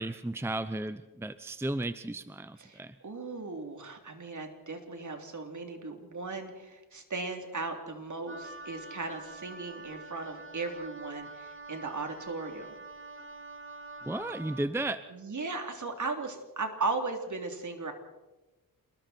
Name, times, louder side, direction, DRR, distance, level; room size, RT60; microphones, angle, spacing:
voice 1, 0.0-2.9 14.0-15.0, right 1 dB, 5° right, 12 dB, 0.7 m, -34 dB
voice 2, 2.7-12.8 15.1-17.9, right 3 dB, 50° right, 4 dB, 3.6 m, -37 dB
Wind instrument woodwind instrument, 8.3-14.7, right 3 dB, 30° right, 2.2 m, -46 dB
28.0 x 21.5 x 4.5 m, 1.1 s
cardioid pair, 75°, 38 cm